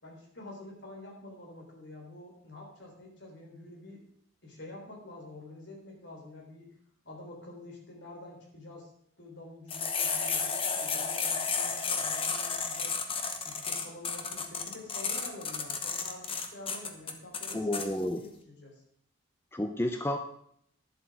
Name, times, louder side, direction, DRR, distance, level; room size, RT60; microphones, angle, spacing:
voice 1, 0.0-4.0 4.4-6.7 7.0-8.9 9.2-13.0 13.4-17.8 18.2-18.8, left 2 dB, 60° left, 0 dB, 3.6 m, -47 dB
sound 1, 9.7-17.9, left 5 dB, 25° left, 1.0 m, -32 dB
voice 2, 17.5-18.2 19.5-20.2, left 1 dB, 10° left, 6 dB, 0.5 m, -30 dB
10.5 x 7.5 x 6.1 m, 0.69 s
head